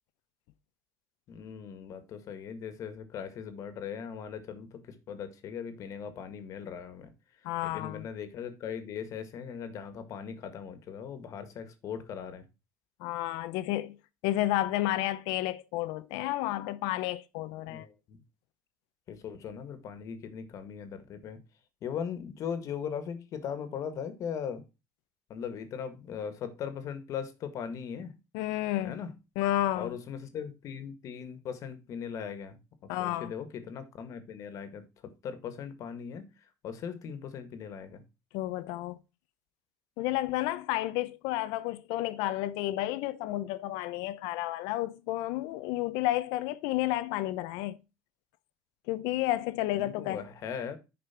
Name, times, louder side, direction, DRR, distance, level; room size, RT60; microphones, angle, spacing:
voice 1, 1.3-7.1 7.4-12.4 17.7-18.2 19.1-21.4 21.8-24.6 25.3-28.1 28.8-29.1 29.7-38.0 49.7-50.8, left 7 dB, 50° left, 1.8 m, -39 dB
voice 2, 7.4-8.1 13.0-14.0 14.2-17.9 28.3-29.0 29.4-29.9 32.9-33.3 38.3-39.0 40.0-47.8 48.9-50.2, left 15 dB, 85° left, 0.8 m, -31 dB
10.5 x 5.2 x 4.4 m
cardioid pair, 135°, 7 cm